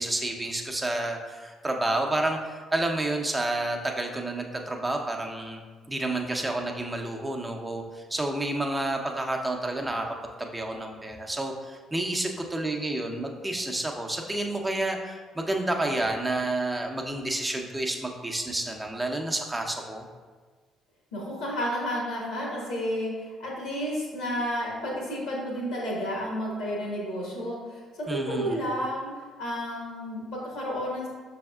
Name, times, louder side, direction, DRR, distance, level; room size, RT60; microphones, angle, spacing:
voice 1, 0.0-5.6 5.9-20.1 28.1-28.6, right 2 dB, 15° right, 2 dB, 0.7 m, -30 dB
voice 2, 21.1-27.8 28.1-31.1, equal, 75° left, -3 dB, 1.3 m, -31 dB
6.1 x 3.4 x 2.3 m, 1.4 s
hypercardioid pair, 50°, 0 cm